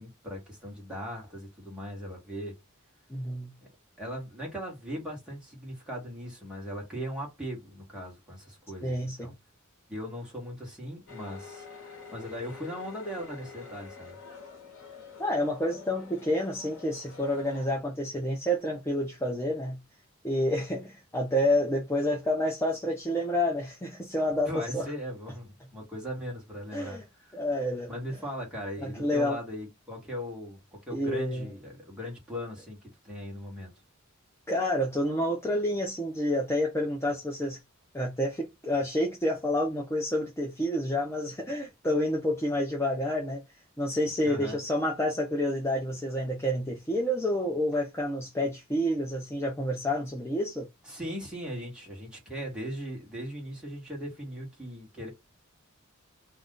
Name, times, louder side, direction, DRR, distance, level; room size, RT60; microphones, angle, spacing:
voice 1, 0.0-2.5 3.6-3.7 4.0-9.3 9.9-14.2 24.4-27.4 27.9-33.7 44.2-44.6 50.8-55.1, equal, 5° right, 1.2 m, -39 dB
voice 2, 3.1-3.5 8.8-9.3 15.2-19.8 20.2-24.9 26.7-27.0 27.3-27.9 28.8-29.4 30.9-31.5 34.5-37.6 37.9-43.4 43.8-50.7, left 1 dB, 10° left, 0.5 m, -29 dB
sound 1, 11.1-17.7, left 5 dB, 60° left, 1.0 m, -47 dB
2.5 x 2.3 x 3.6 m
head